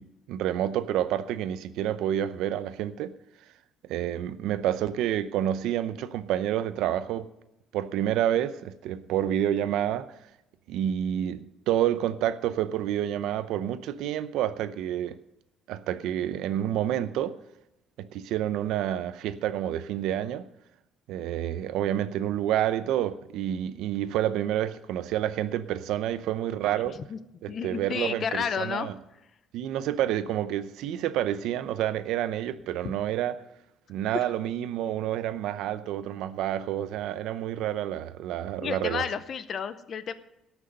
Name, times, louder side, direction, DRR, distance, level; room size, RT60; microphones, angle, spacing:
voice 1, 0.0-3.1 3.9-7.3 7.7-10.1 10.7-15.2 15.7-17.4 18.0-20.4 21.1-27.0 27.4-28.9 29.5-33.3 33.9-39.0, right 11 dB, 80° right, 0.7 m, -29 dB
voice 2, 27.5-28.9 34.1-34.2 38.6-40.1, left 7 dB, 35° left, 0.7 m, -31 dB
18.0 x 6.2 x 6.6 m
cardioid pair, 165°, 0 cm